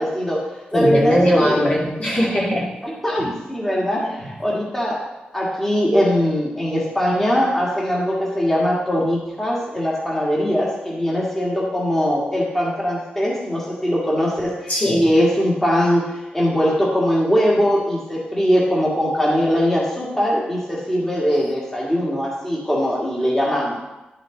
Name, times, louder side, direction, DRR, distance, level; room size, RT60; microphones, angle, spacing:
voice 1, 0.0-1.7 2.8-23.8, equal, 10° left, -4 dB, 1.7 m, -21 dB
voice 2, 0.7-2.7 14.7-15.1, equal, 45° left, -4 dB, 2.0 m, -19 dB
11.5 x 5.1 x 3.8 m, 1.0 s
wide cardioid pair, 125°, 3 cm